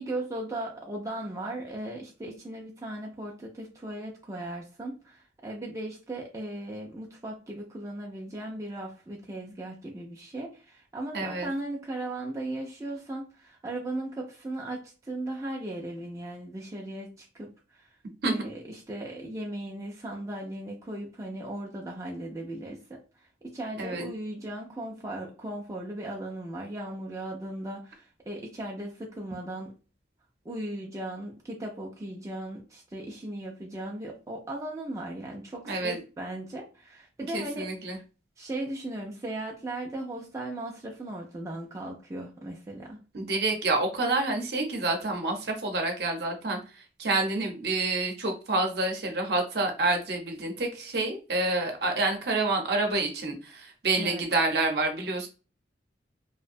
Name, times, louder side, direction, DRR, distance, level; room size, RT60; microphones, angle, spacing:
voice 1, 0.0-17.9 18.2-29.7 30.4-38.0 38.4-43.0 53.9-54.3, right 1 dB, 15° right, 0.3 m, -37 dB
voice 2, 11.1-11.5 18.2-18.3 23.8-24.1 35.7-36.0 37.3-38.0 43.1-55.3, right 2 dB, 60° right, 0.7 m, -28 dB
2.6 x 2.1 x 2.5 m
head